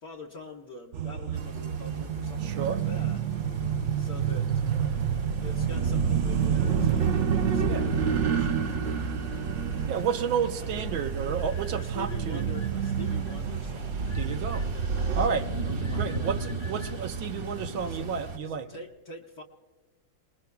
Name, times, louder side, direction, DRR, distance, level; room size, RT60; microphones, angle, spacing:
voice 1, 0.0-3.2 4.0-4.5 5.4-9.0 9.8-10.0 11.7-14.1 15.2-15.3 15.6-16.4 17.7-18.2 18.5-19.4, left 3 dB, 55° left, 1.5 m, -44 dB
sound 1, 0.9-15.3, right 8 dB, 65° right, 0.7 m, -29 dB
sound 2, 1.3-18.4, right 2 dB, 45° right, 1.3 m, -35 dB
voice 2, 2.4-2.8 7.7-7.9 9.9-12.5 14.1-14.7 15.1-15.5 15.9-18.7, right 7 dB, 85° right, 1.7 m, -31 dB
sound 3, 11.4-13.4 14.0-15.1 15.8-16.9, left 3 dB, 30° left, 1.2 m, -50 dB
29.5 x 20.5 x 2.3 m
omnidirectional pair, 2.1 m